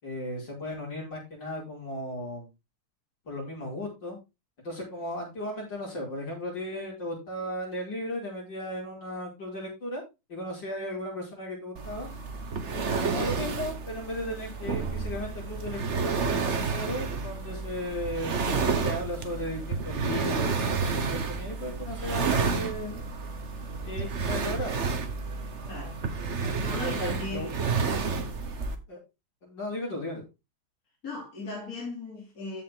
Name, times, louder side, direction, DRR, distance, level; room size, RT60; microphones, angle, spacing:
voice 1, 0.0-2.5 3.2-4.2 4.6-10.0 10.3-12.1 13.0-18.4 18.8-23.0 23.9-24.8 26.4-27.5 28.9-29.0 29.4-30.2, left 1 dB, 55° left, 6.2 m, -36 dB
sound 1, 11.8-28.8, right 5 dB, 40° right, 1.2 m, -30 dB
voice 2, 25.7-26.0 26.6-27.6 31.0-32.6, left 2 dB, 40° left, 3.8 m, -37 dB
14.0 x 5.4 x 3.8 m
omnidirectional pair, 2.3 m